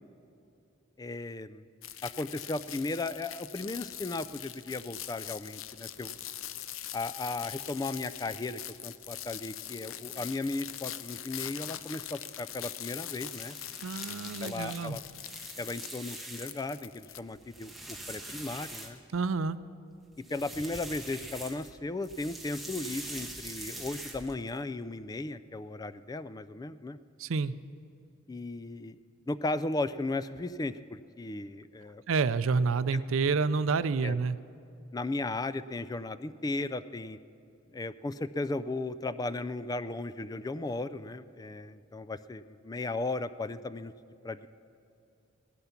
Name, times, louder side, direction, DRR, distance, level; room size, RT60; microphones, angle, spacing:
voice 1, 1.0-1.6 2.0-6.2 6.9-13.6 14.4-15.0 15.6-19.0 20.3-27.0 28.3-29.0 29.3-32.0 34.0-34.2 34.9-37.2 37.7-43.9 44.2-44.5, left 2 dB, 20° left, 14 dB, 0.3 m, -36 dB
sound 1, 1.8-17.2, left 11 dB, 80° left, 0.6 m, -42 dB
sound 2, 12.9-16.7 17.1-19.4 20.1-21.8 22.0-24.6, right 1 dB, ahead, 1.3 m, -44 dB
voice 2, 13.8-15.0 19.1-19.6 27.2-27.5 32.1-34.4, right 4 dB, 80° right, 15 dB, 0.5 m, -28 dB
17.0 x 12.0 x 5.8 m, 2.7 s
head